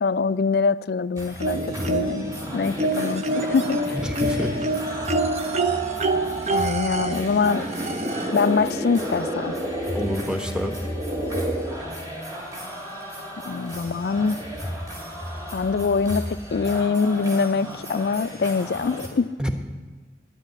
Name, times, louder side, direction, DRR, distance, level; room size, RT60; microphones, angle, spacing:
voice 1, 0.0-1.6 1.9-4.0 6.5-7.7 8.3-9.5 13.4-14.4 15.5-19.4, left 5 dB, 60° left, 0.3 m, -24 dB
sound 1, 1.1-19.1, equal, 20° right, 2.2 m, -35 dB
sound 2, 1.4-2.4 2.8-8.5 9.7-9.8 10.2-10.3, right 2 dB, 35° right, 0.6 m, -27 dB
sound 3, 1.5-11.8, equal, 55° right, 2.0 m, -33 dB
voice 2, 3.9-4.5 9.9-10.8 19.4-19.6, equal, 5° right, 0.9 m, -27 dB
10.5 x 9.7 x 9.1 m
head